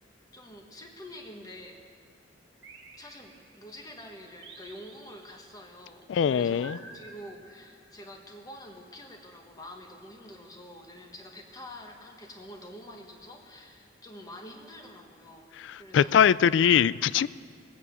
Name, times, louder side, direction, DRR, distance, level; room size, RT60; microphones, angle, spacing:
voice 1, 0.3-1.8 3.0-15.5 15.8-16.2, left 1 dB, 20° left, 2 dB, 1.3 m, -47 dB
sound 1, 2.6-3.8 4.4-5.6 6.6-8.1, right 3 dB, 70° right, 1.6 m, -50 dB
voice 2, 6.1-6.8 15.7-17.3, left 8 dB, 75° left, 19 dB, 0.3 m, -22 dB
19.0 x 8.4 x 8.2 m, 2.1 s
head